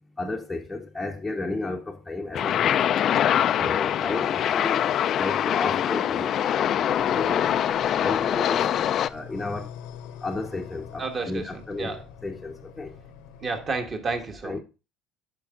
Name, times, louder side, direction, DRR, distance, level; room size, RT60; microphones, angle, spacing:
voice 1, 0.2-2.9 3.6-4.8 5.2-7.5 8.0-8.7 9.1-9.7 10.2-11.9 12.2-12.9 14.4-14.6, left 3 dB, 5° left, 0.8 m, -33 dB
sound 1, 2.3-9.1, left 10 dB, 40° left, 0.3 m, -24 dB
sound 2, 6.9-13.8, left 8 dB, 85° left, 0.9 m, -45 dB
voice 2, 11.0-12.1 13.4-14.6, right 4 dB, 25° right, 1.3 m, -31 dB
10.5 x 5.3 x 3.7 m
cardioid pair, 150°, 0 cm